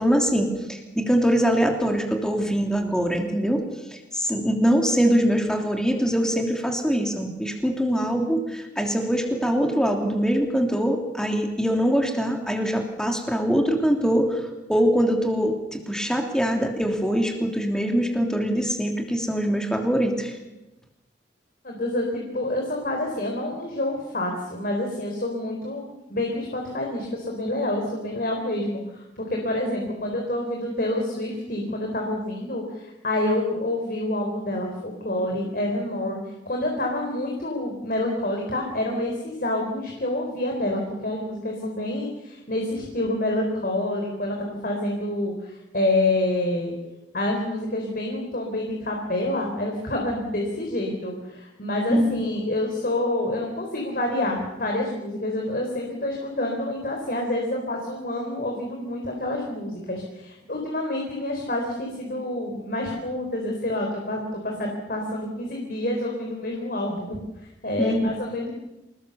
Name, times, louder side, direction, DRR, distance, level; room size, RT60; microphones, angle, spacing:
voice 1, 0.0-3.6 3.9-20.4 51.9-52.1 67.8-68.0, equal, 5° left, 2 dB, 3.2 m, -23 dB
voice 2, 21.6-36.2 36.5-46.7 47.1-67.2 67.6-68.5, left 1 dB, 50° left, 1 dB, 4.5 m, -28 dB
27.5 x 19.5 x 7.0 m, 1.0 s
head